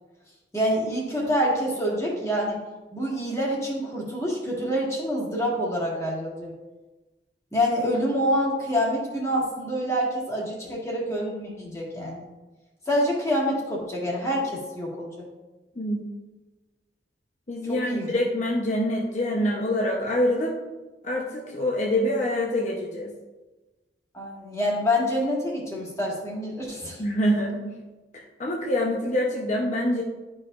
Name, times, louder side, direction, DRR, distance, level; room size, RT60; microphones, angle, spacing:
voice 1, 0.5-2.6 2.9-6.5 7.5-12.2 12.9-15.2 17.7-18.2 24.1-27.0, equal, 15° left, -4 dB, 1.7 m, -26 dB
voice 2, 17.5-20.5 21.0-23.1 27.0-27.8 28.4-30.0, left 1 dB, 40° left, -2 dB, 0.8 m, -25 dB
11.5 x 4.9 x 2.5 m, 1.2 s
head